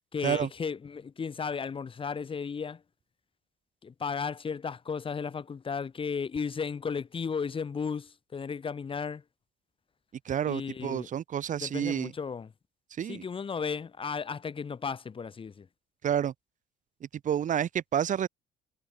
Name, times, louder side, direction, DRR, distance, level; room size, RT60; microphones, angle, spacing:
voice 1, 0.1-2.8 3.8-9.2 10.5-11.1 11.6-12.5 13.1-15.7, left 6 dB, 30° left, 2.6 m, -34 dB
voice 2, 10.3-12.1 13.0-13.2 16.0-16.3 17.2-18.3, right 9 dB, 50° right, 2.1 m, -29 dB
cardioid pair, 110°, 17 cm